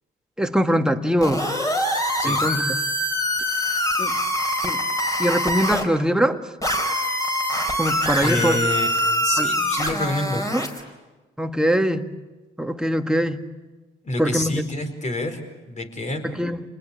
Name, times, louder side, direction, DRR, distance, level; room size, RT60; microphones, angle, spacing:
voice 1, 0.4-1.5 2.2-2.8 4.0-4.2 4.6-4.8 5.2-6.5 7.8-8.6 9.4-9.5 10.5-10.7 11.4-12.1 12.6-13.4 14.2-14.6 16.2-16.6, equal, 5° right, 6 dB, 1.7 m, -22 dB
sound 1, 1.2-5.8 6.6-10.8, equal, 15° left, 4.5 m, -24 dB
voice 2, 8.2-10.4 14.0-15.4 15.7-16.2, left 2 dB, 35° left, 6 dB, 4.8 m, -27 dB
28.5 x 20.5 x 8.6 m, 1.2 s
supercardioid pair, 65°, 21 cm